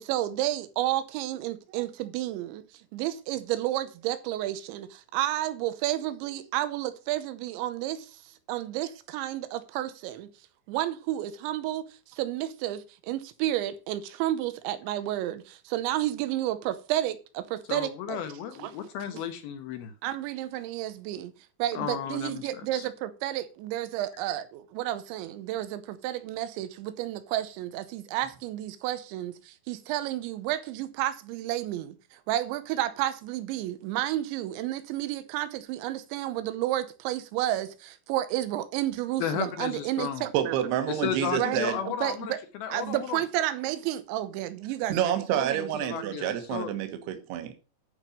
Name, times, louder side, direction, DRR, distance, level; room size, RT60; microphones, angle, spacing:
voice 1, 0.0-2.6 2.9-8.2 8.5-10.3 10.7-11.8 12.1-18.2 18.6-18.7 19.1-19.2 20.0-21.3 21.6-40.6 41.4-42.4 42.7-46.2, right 13 dB, 90° right, 3.1 m, -31 dB
voice 2, 17.7-19.9 21.7-22.9 39.2-40.3 40.9-42.3 42.6-43.2 45.8-46.7, left 9 dB, 75° left, 2.4 m, -34 dB
voice 3, 40.3-41.8 44.9-47.5, right 10 dB, 70° right, 3.2 m, -28 dB
11.5 x 5.3 x 5.7 m
omnidirectional pair, 5.2 m